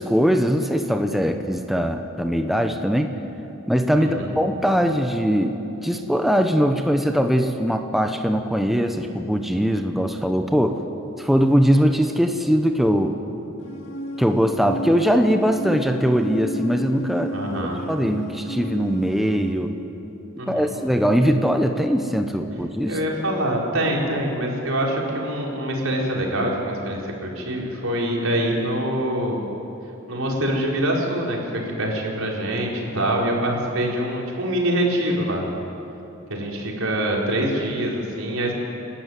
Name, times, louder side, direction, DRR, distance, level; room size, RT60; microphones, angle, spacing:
voice 1, 0.0-3.1 3.7-5.6 5.8-10.8 11.2-13.2 14.2-17.3 17.9-19.7 20.5-23.0, equal, ahead, 5 dB, 1.0 m, -21 dB
sound 1, 13.6-19.5, left 1 dB, 65° left, 2.2 m, -33 dB
voice 2, 17.3-17.8 20.4-20.7 22.9-29.4 30.1-35.5 36.3-38.5, right 1 dB, 85° right, -2 dB, 4.7 m, -24 dB
29.5 x 12.5 x 9.4 m, 3.0 s
head